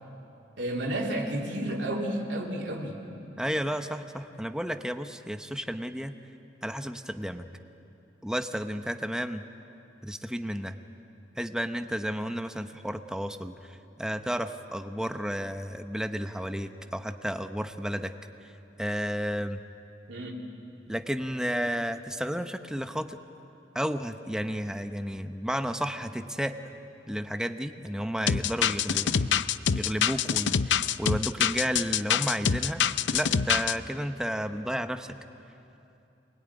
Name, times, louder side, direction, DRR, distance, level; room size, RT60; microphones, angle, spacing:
voice 1, 0.6-3.0 20.1-20.4, right 1 dB, 75° right, -2 dB, 3.2 m, -31 dB
voice 2, 3.4-6.1 6.6-7.5 8.2-9.4 10.0-10.8 11.4-18.1 18.8-19.6 20.9-23.2 23.7-26.6 27.1-29.4 29.7-32.8 33.1-35.2, equal, 5° right, 7 dB, 0.8 m, -32 dB
sound 1, 28.3-33.7, left 8 dB, 75° left, 0.6 m, -25 dB
25.5 x 21.5 x 9.8 m, 2.8 s
head